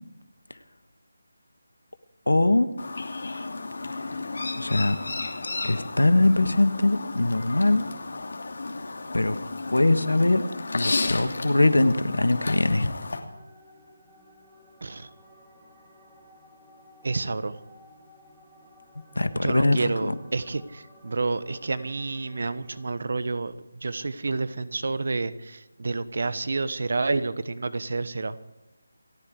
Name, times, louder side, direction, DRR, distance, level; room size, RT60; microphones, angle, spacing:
voice 1, 2.3-2.7 3.9-4.1 4.6-5.0 5.6-7.9 9.1-9.4 9.7-10.4 10.7-13.0 19.1-20.1, left 2 dB, 90° left, 11 dB, 1.5 m, -22 dB
Chirp tweet, 2.8-13.2, left 3 dB, 65° left, 2.7 m, -33 dB
sound 1, 13.3-22.9, left 1 dB, 5° right, 4.5 m, -55 dB
voice 2, 17.0-17.6 19.4-23.5 23.8-28.4, right 3 dB, 60° right, 15 dB, 1.2 m, -29 dB
28.0 x 10.0 x 4.9 m, 1.1 s
figure-of-eight pair, 165°, 0 cm